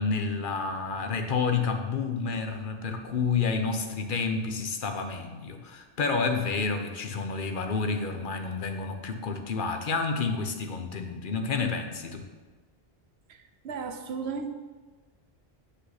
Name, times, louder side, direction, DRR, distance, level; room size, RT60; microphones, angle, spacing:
voice 1, 0.0-12.3, left 4 dB, 55° left, 6 dB, 0.9 m, -29 dB
voice 2, 13.3-14.5, right 5 dB, 80° right, 7 dB, 0.9 m, -35 dB
7.8 x 5.7 x 4.0 m, 1.4 s
omnidirectional pair, 1.1 m